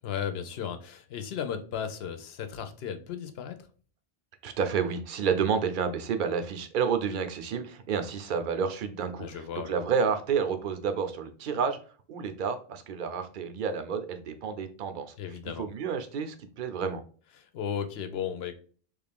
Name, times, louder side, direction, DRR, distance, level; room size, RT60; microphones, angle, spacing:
voice 1, 0.0-3.6 9.2-9.8 15.2-15.7 17.4-18.5, left 8 dB, 80° left, 8 dB, 0.8 m, -35 dB
voice 2, 4.4-9.3 9.7-11.8 12.1-15.1 15.6-17.0, right 6 dB, 60° right, 8 dB, 0.7 m, -30 dB
3.4 x 2.5 x 3.4 m, 0.41 s
omnidirectional pair, 1.0 m